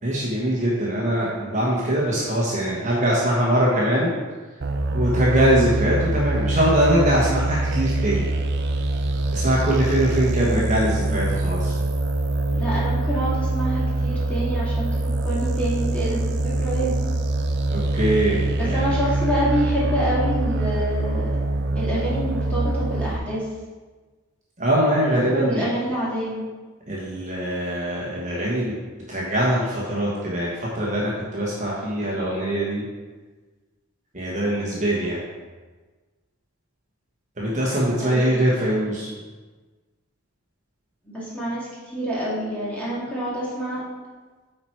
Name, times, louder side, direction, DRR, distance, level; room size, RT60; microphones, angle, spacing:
voice 1, 0.0-4.1 4.9-8.3 9.3-11.8 17.7-19.0 24.6-25.7 26.9-28.7 29.1-32.8 34.1-35.2 37.4-39.1, right 1 dB, 35° right, -5 dB, 1.1 m, -22 dB
sound 1, 4.6-23.2, right 2 dB, 50° right, 0.5 m, -24 dB
voice 2, 10.4-11.0 12.5-17.1 18.6-21.3 21.7-23.5 25.3-26.4 38.0-38.3 41.0-43.8, right 1 dB, 5° left, -9 dB, 2.2 m, -27 dB
9.0 x 4.4 x 4.5 m, 1.3 s
head